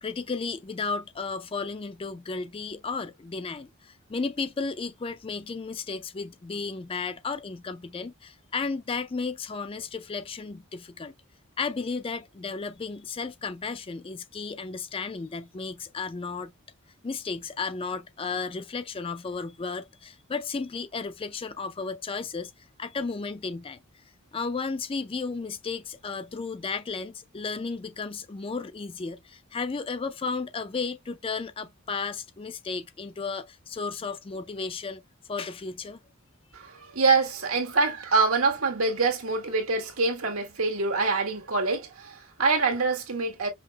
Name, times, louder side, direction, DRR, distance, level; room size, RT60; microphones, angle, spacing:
voice 1, 0.0-11.1 11.6-16.5 17.0-22.5 22.8-23.8 24.3-35.0 35.3-36.0, left 4 dB, 25° left, 0.4 m, -34 dB
voice 2, 36.5-43.5, right 4 dB, 80° right, 1.6 m, -25 dB
5.5 x 2.1 x 2.8 m
head